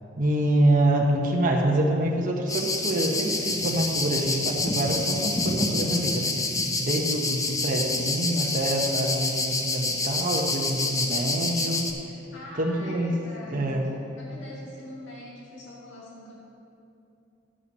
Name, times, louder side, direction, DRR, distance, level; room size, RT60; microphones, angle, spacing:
voice 1, 0.2-11.9 12.6-13.1 13.5-13.8, right 1 dB, 45° right, 0 dB, 0.9 m, -26 dB
sound 1, 2.5-11.9, left 2 dB, 20° left, 0.7 m, -28 dB
voice 2, 12.3-16.4, equal, 75° left, -5 dB, 2.0 m, -43 dB
12.5 x 5.8 x 5.4 m, 2.7 s
head